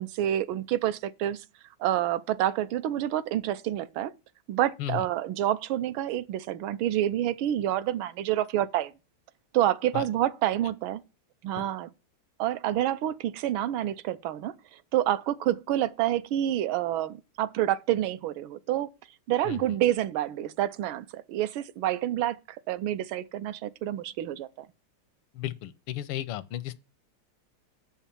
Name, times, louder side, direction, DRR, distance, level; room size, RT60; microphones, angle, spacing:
voice 1, 0.0-1.4 1.8-4.1 4.5-8.9 9.5-11.0 11.4-11.9 12.4-14.5 14.9-18.9 19.3-24.7, right 12 dB, 75° right, 1.4 m, -28 dB
voice 2, 25.3-26.8, left 13 dB, 85° left, 1.5 m, -34 dB
7.2 x 5.6 x 7.1 m
omnidirectional pair, 2.3 m